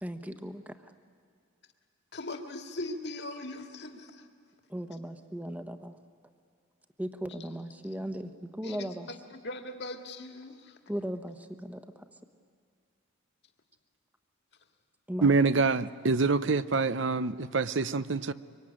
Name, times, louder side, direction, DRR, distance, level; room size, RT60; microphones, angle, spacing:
voice 1, 0.0-0.9 4.7-6.0 7.0-9.1 10.9-12.0 15.1-15.4, equal, 5° right, 8 dB, 1.2 m, -37 dB
voice 2, 2.1-4.3 8.6-10.8, left 2 dB, 55° left, 5 dB, 2.1 m, -40 dB
voice 3, 15.2-18.3, right 4 dB, 60° right, 14 dB, 0.7 m, -26 dB
24.5 x 24.5 x 10.0 m, 2.2 s
head